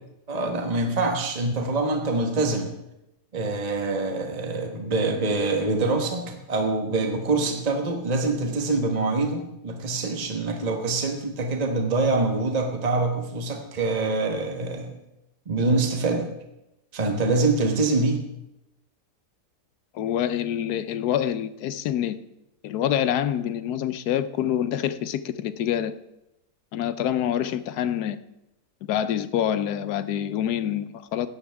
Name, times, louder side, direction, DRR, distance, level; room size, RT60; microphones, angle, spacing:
voice 1, 0.3-2.7 3.3-14.9 15.5-16.3 16.9-18.2, right 3 dB, 25° right, 3 dB, 1.3 m, -25 dB
voice 2, 19.9-22.2 22.6-25.9 26.7-28.2 28.8-31.3, left 10 dB, 80° left, 13 dB, 1.2 m, -26 dB
16.5 x 13.0 x 3.5 m, 0.90 s
omnidirectional pair, 1.7 m